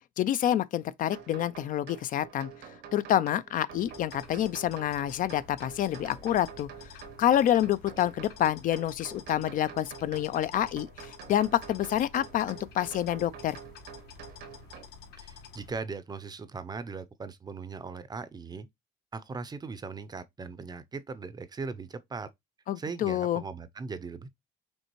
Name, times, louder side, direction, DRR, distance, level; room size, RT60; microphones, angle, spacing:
voice 1, 0.2-2.5 2.9-6.7 7.2-13.6 22.7-23.4, left 11 dB, 55° left, 0.4 m, -28 dB
sound 1, 1.1-14.8, right 8 dB, 85° right, 1.3 m, -48 dB
sound 2, 3.7-15.8, left 5 dB, 75° left, 1.4 m, -50 dB
voice 2, 15.2-18.7 19.1-22.3 22.8-24.3, right 4 dB, 25° right, 0.5 m, -39 dB
5.3 x 3.3 x 3.0 m
cardioid pair, 110°, 17 cm